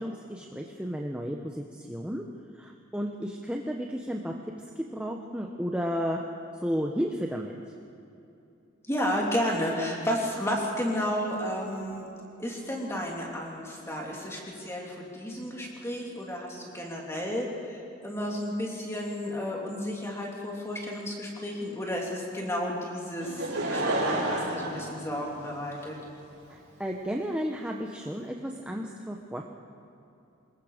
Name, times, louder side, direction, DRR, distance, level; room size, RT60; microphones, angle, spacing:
voice 1, 0.0-2.2 2.6-4.3 4.8-6.2 6.6-7.5 26.5-29.4, equal, 5° right, 1 dB, 0.9 m, -33 dB
voice 2, 8.9-12.1 12.4-25.9, equal, 15° left, -2 dB, 3.2 m, -32 dB
Laughter / Crowd, 23.2-25.8 26.5-26.6, right 1 dB, 80° right, 5.2 m, -30 dB
25.5 x 21.0 x 5.1 m, 2.8 s
head